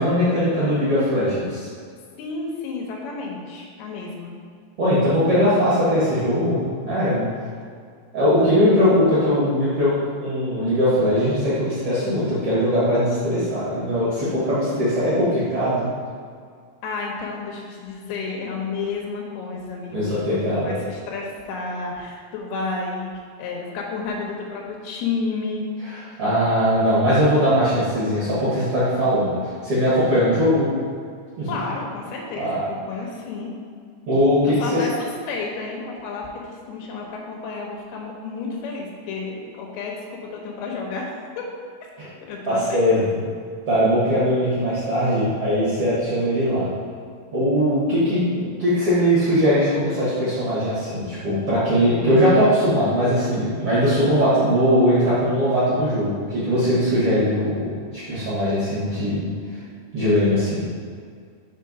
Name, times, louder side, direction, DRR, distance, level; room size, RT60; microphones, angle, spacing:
voice 1, 0.0-1.7 4.8-7.2 8.1-9.9 10.2-15.9 19.9-20.7 26.2-30.7 31.4-31.6 32.4-32.6 34.1-34.5 42.0-42.1 42.5-43.0 43.7-46.7 47.3-59.3 59.5-59.6 59.9-60.7, equal, 55° right, -10 dB, 1.7 m, -20 dB
voice 2, 2.2-4.3 16.8-23.1 23.4-25.7 31.5-33.5 34.5-41.5 42.2-43.2, left 4 dB, 75° left, -2 dB, 2.8 m, -31 dB
5.7 x 4.4 x 5.3 m, 2.1 s
omnidirectional pair, 4.9 m